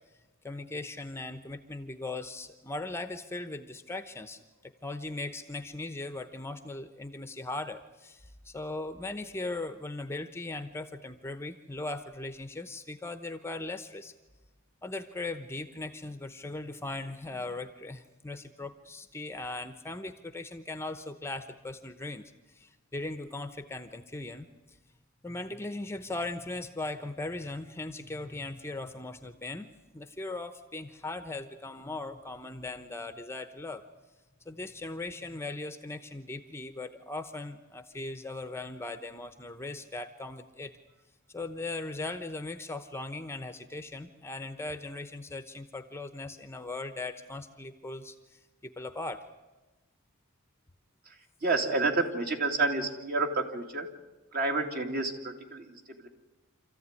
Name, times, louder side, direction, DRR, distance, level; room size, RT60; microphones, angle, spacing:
voice 1, 0.4-14.1 14.8-22.2 22.5-24.8 25.2-33.8 34.5-40.7 41.3-49.3, left 2 dB, 10° left, 10 dB, 0.9 m, -39 dB
voice 2, 51.4-53.9 54.3-56.1, right 3 dB, 45° right, 4 dB, 2.7 m, -29 dB
27.0 x 14.5 x 9.7 m, 1.1 s
head